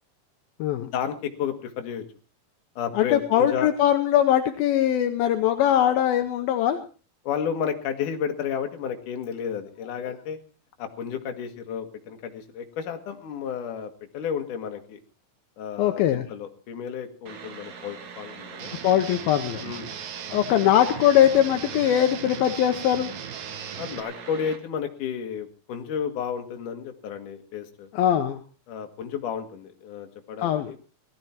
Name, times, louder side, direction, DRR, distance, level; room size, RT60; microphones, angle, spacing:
voice 1, 0.8-2.0 2.8-3.7 7.2-10.4 10.8-15.0 15.6-18.7 19.6-19.9 23.8-27.9 28.7-30.8, left 7 dB, 60° left, 5 dB, 2.9 m, -32 dB
voice 2, 3.0-6.8 15.8-16.3 18.8-19.7 20.3-23.1 27.9-28.4 30.4-30.7, left 11 dB, 80° left, 6 dB, 2.7 m, -21 dB
sound 1, 17.3-24.6, right 6 dB, 50° right, 3.0 m, -42 dB
Guitar, 18.6-24.0, right 8 dB, 70° right, 2.9 m, -38 dB
18.5 x 13.5 x 4.4 m, 0.37 s
omnidirectional pair, 4.5 m